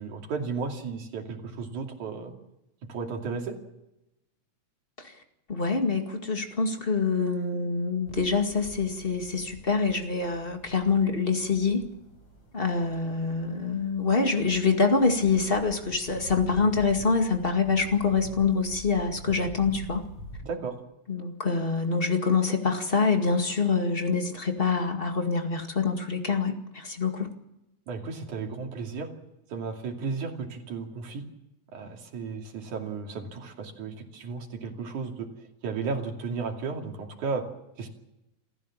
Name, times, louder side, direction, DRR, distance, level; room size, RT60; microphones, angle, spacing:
voice 1, 0.0-2.3 2.9-3.6 20.4-20.7 27.9-29.1 29.5-31.2 31.7-35.3 35.6-37.4 37.8-37.9, right 5 dB, 90° right, 3 dB, 4.1 m, -34 dB
voice 2, 5.5-11.9 12.5-20.0 21.1-27.3, left 4 dB, 20° left, 5 dB, 1.9 m, -25 dB
sound 1, 8.0-20.4, equal, 65° left, 8.4 m, -46 dB
28.0 x 14.5 x 7.4 m, 0.89 s
omnidirectional pair, 3.3 m